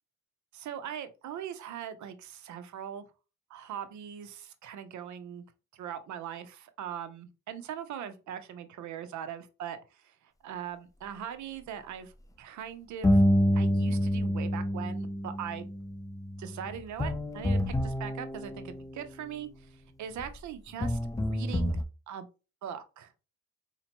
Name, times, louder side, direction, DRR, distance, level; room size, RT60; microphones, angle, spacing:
voice 1, 0.5-3.0 3.5-5.4 5.7-10.1 10.4-12.1 12.4-13.2 13.5-15.7 16.4-21.8 22.1-22.3 22.6-23.1, right 9 dB, 70° right, 0.7 m, -41 dB
sound 1, 13.0-19.0 20.2-20.3 20.8-21.8, equal, 10° left, 0.4 m, -28 dB
4.3 x 2.8 x 2.9 m
cardioid pair, 90°, 30 cm